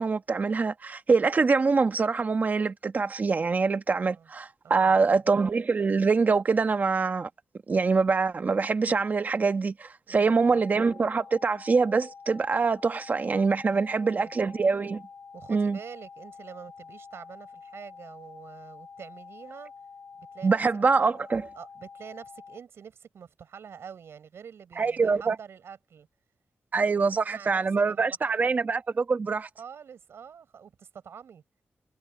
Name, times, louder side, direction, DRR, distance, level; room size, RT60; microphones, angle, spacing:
voice 1, 0.0-7.3 7.7-15.0 15.5-15.8 20.4-21.4 24.8-25.4 26.7-29.5, right 4 dB, 45° right, 1.4 m, -24 dB
voice 2, 4.0-4.3 4.6-5.2 10.1-10.7 13.7-14.5 15.3-19.7 20.2-20.6 20.9-21.2 21.6-26.1 27.0-28.5 29.6-31.4, right 7 dB, 85° right, 7.1 m, -46 dB
sound 1, 10.4-22.6, left 5 dB, 55° left, 7.2 m, -48 dB
wide cardioid pair, 120°, 4 cm